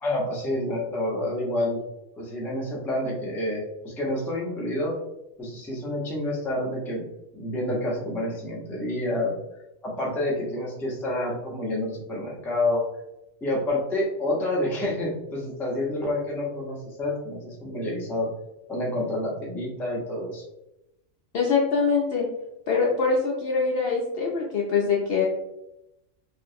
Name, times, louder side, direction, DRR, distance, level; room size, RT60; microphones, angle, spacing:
voice 1, 0.0-1.8 2.2-5.0 5.4-7.0 7.3-9.3 9.8-12.8 13.4-18.3 18.7-20.5, left 1 dB, 5° left, -4 dB, 0.4 m, -28 dB
voice 2, 21.3-22.3 22.7-25.3, left 5 dB, 65° left, -3 dB, 0.6 m, -23 dB
3.1 x 2.5 x 2.6 m, 0.89 s
omnidirectional pair, 1.4 m